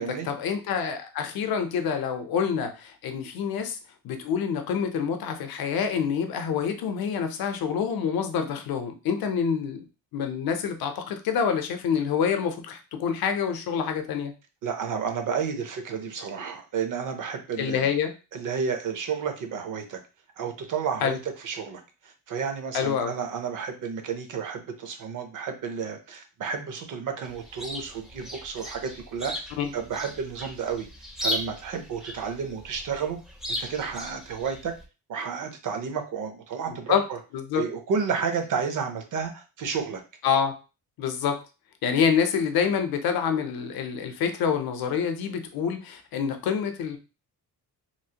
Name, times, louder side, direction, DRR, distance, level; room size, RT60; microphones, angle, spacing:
voice 1, 0.0-3.8 4.0-9.9 10.1-14.3 17.6-18.1 21.0-21.2 22.7-23.1 29.6-29.7 36.9-37.0 37.3-37.7 40.2-40.5 41.0-41.4 41.8-47.0, left 7 dB, 75° left, 7 dB, 0.6 m, -27 dB
voice 2, 14.6-17.9 18.3-20.0 20.4-30.9 31.2-33.2 33.5-34.7 35.1-37.2 37.5-40.0, right 6 dB, 60° right, 6 dB, 0.6 m, -31 dB
Chirp tweet, 27.2-34.8, left 1 dB, ahead, 0.3 m, -37 dB
3.0 x 2.4 x 2.8 m, 0.31 s
wide cardioid pair, 180°, 36 cm